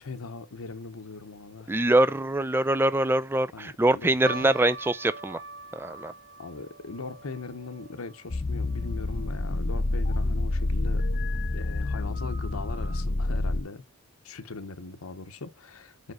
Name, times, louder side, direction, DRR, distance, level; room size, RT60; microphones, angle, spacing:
voice 1, 0.0-1.7 3.5-4.6 6.4-11.1 11.5-13.8 14.2-16.1, left 3 dB, 85° left, 1.0 m, -40 dB
voice 2, 1.7-5.4 5.7-6.1, right 1 dB, 10° right, 0.3 m, -24 dB
sound 1, 4.2-10.7 11.0-11.1 11.9-12.1 12.7-12.8 13.2-13.4, right 3 dB, 70° right, 0.9 m, -45 dB
sound 2, 8.3-13.6, left 2 dB, 40° left, 0.6 m, -28 dB
5.3 x 5.1 x 6.2 m
head